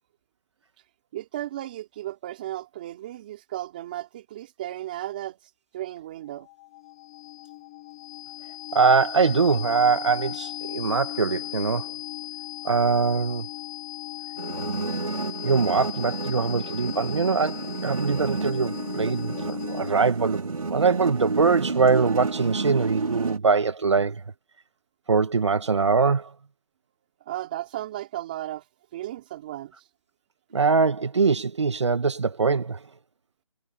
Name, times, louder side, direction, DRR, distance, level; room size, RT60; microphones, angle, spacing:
voice 1, 1.1-5.4 5.7-6.5 27.2-28.6 28.9-29.7, right 14 dB, 15° right, 3.4 m, -35 dB
sound 1, 6.3-20.2, left 15 dB, 5° left, 0.8 m, -37 dB
voice 2, 8.7-11.9 12.6-13.5 15.4-24.2 25.1-26.3 30.5-32.8, right 4 dB, 55° right, 1.6 m, -23 dB
sound 2, 14.4-23.4, right 4 dB, 90° right, 6.1 m, -31 dB
hypercardioid pair, 180°, 18 cm